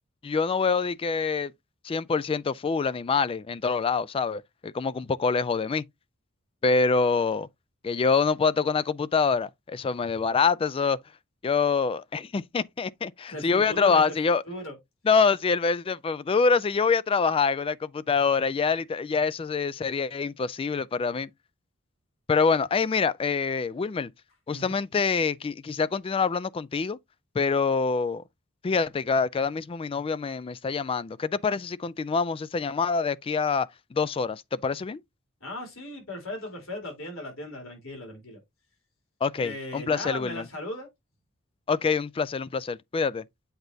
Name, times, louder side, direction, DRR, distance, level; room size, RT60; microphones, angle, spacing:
voice 1, 0.2-1.5 1.8-5.8 6.6-7.5 7.8-11.0 11.4-14.4 15.1-21.3 22.3-24.1 24.5-27.0 27.4-28.2 28.6-35.0 39.2-40.4 41.7-43.2, left 5 dB, 25° left, 0.3 m, -25 dB
voice 2, 13.3-14.1 14.5-14.8 24.5-24.8 35.4-38.4 39.4-40.9, left 1 dB, 75° left, 3.6 m, -37 dB
8.0 x 5.0 x 2.7 m
head